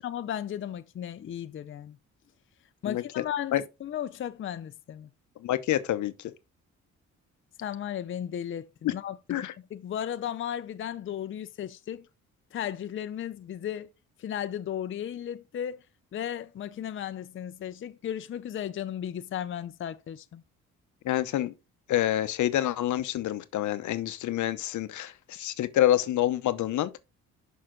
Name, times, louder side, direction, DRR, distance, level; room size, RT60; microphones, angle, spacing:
voice 1, 0.0-2.0 2.8-5.1 7.6-12.1 12.5-13.9 14.2-15.8 16.1-20.4, left 10 dB, 40° left, 0.5 m, -35 dB
voice 2, 5.4-6.1 8.8-8.9 9.3-9.5 21.0-21.5 21.9-27.0, left 13 dB, 75° left, 0.8 m, -27 dB
6.6 x 5.5 x 3.8 m
cardioid pair, 90°, 30 cm